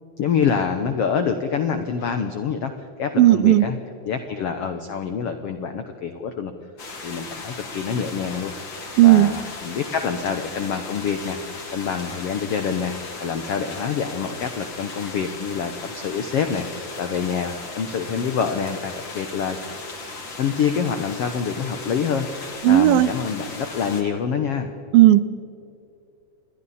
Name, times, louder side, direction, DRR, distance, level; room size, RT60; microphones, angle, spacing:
voice 1, 0.2-3.8 4.0-6.5 7.0-8.5 9.0-19.6 20.4-24.7, left 6 dB, 75° left, 7 dB, 1.3 m, -26 dB
voice 2, 3.2-3.7 9.0-9.3 22.6-23.1 24.9-25.2, right 15 dB, 80° right, 15 dB, 2.5 m, -13 dB
sound 1, 6.8-24.0, left 3 dB, 35° left, 2.8 m, -37 dB
29.0 x 22.0 x 4.3 m, 2.6 s
omnidirectional pair, 4.2 m